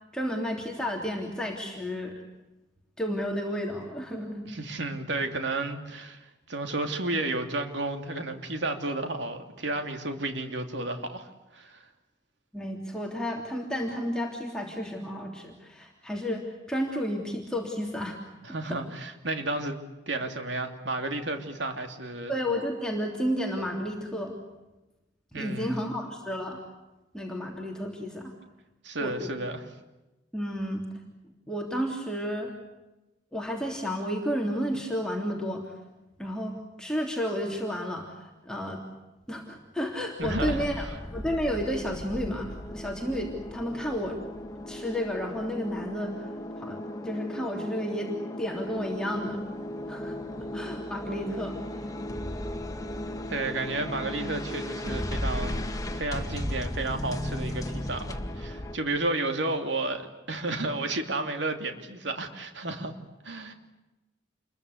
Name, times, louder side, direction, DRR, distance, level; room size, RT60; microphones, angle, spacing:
voice 1, 0.1-2.2 3.0-4.5 12.5-18.2 18.7-18.8 22.3-24.3 25.3-26.6 27.1-28.3 29.0-29.3 30.3-30.8 31.5-32.5 33.3-35.7 36.2-38.8 39.3-44.2 44.7-46.3 46.6-46.8 47.0-48.1 48.4-49.4 49.9-50.2 50.5-51.6, equal, 5° left, 0 dB, 3.2 m, -32 dB
voice 2, 4.4-11.8 18.4-19.8 20.1-22.3 25.3-25.8 28.8-29.6 40.2-40.7 53.3-55.7 55.9-62.9 63.2-63.5, right 2 dB, 75° right, 5 dB, 2.9 m, -32 dB
sound 1, 40.2-58.8, left 1 dB, 20° left, 2.0 m, -36 dB
28.5 x 22.5 x 8.2 m, 1.0 s
head